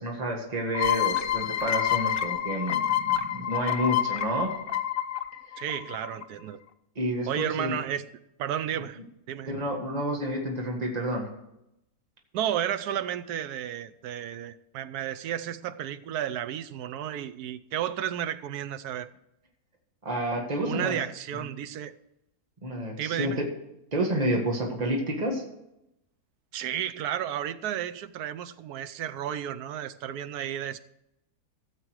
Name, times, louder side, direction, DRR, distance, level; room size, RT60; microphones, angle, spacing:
voice 1, 0.0-4.5 7.0-7.8 9.5-11.3 20.1-21.0 22.6-23.5 23.9-25.4, right 1 dB, 25° right, 1 dB, 1.8 m, -29 dB
sound 1, 0.7-6.2, left 11 dB, 50° left, 0.8 m, -28 dB
voice 2, 5.6-6.6 7.3-8.1 8.4-9.0 9.3-9.6 12.3-19.1 20.6-22.0 23.0-23.4 26.5-30.8, right 10 dB, 80° right, 11 dB, 1.2 m, -32 dB
15.0 x 7.5 x 4.7 m, 0.85 s
omnidirectional pair, 1.6 m